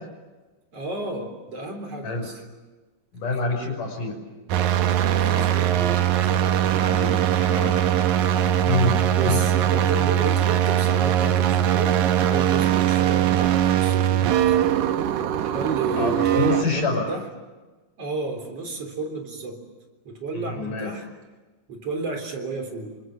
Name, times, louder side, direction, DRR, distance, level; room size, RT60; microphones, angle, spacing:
voice 1, 0.7-2.4 5.1-7.0 9.2-12.0 12.3-14.7 15.4-17.2 18.0-19.6 20.0-21.1 21.7-22.9, right 3 dB, 45° right, 4 dB, 4.7 m, -32 dB
voice 2, 3.1-4.2 6.7-7.8 8.6-9.4 16.0-17.1 20.3-20.9, left 3 dB, 70° left, 3 dB, 7.3 m, -27 dB
sound 1, 4.5-16.6, right 10 dB, 70° right, 2.4 m, -21 dB
28.5 x 25.5 x 7.8 m, 1.2 s
omnidirectional pair, 3.8 m